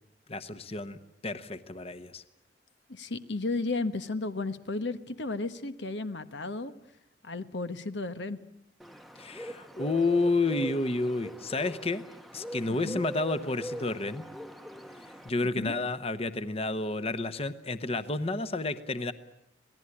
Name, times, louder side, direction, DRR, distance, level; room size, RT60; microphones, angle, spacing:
voice 1, 0.3-1.0 1.2-2.2 9.2-12.0 12.3-14.2 15.2-19.1, left 2 dB, 35° left, 12 dB, 1.1 m, -30 dB
voice 2, 2.9-6.7 7.2-8.4 12.7-13.0 15.4-15.8, left 3 dB, 85° left, 11 dB, 1.2 m, -34 dB
Bird, 8.8-15.3, equal, ahead, 1.0 m, -42 dB
26.5 x 18.5 x 9.8 m, 0.76 s
head